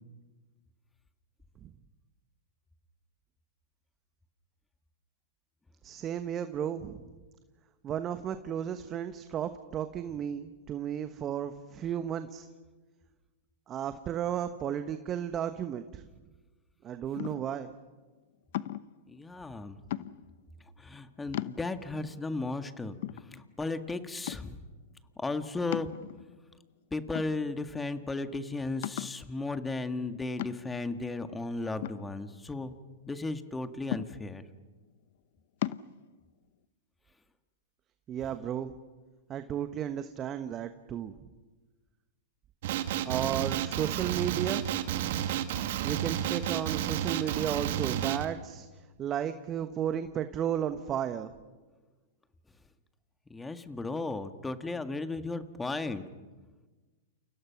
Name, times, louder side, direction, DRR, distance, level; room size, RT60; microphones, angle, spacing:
voice 1, 5.8-7.1 7.8-12.5 13.7-16.0 16.8-17.7 38.1-38.7 39.3-41.1 43.0-44.6 45.8-48.7 49.0-51.3, right 9 dB, 30° right, 9 dB, 1.2 m, -33 dB
sound 1, 17.2-17.6 18.5-19.0 19.9-20.4 20.9-21.0 21.3-22.0 22.5-22.6 23.0-23.8 24.3-24.7 25.7-26.4 27.1-27.8 28.1-28.2 28.8-29.3 30.4-30.9 31.8-32.7 33.9-34.5 35.6-35.9, left 14 dB, 60° left, 0.8 m, -37 dB
voice 2, 19.1-19.8 20.8-24.6 25.2-25.9 26.9-32.7 33.1-34.4 53.3-56.0, left 3 dB, 10° left, 8 dB, 1.8 m, -35 dB
Male speech man speaking, 42.6-48.3, right 11 dB, 60° right, 2.1 m, -31 dB
29.5 x 29.0 x 6.0 m, 1.3 s
hypercardioid pair, 110°, 0 cm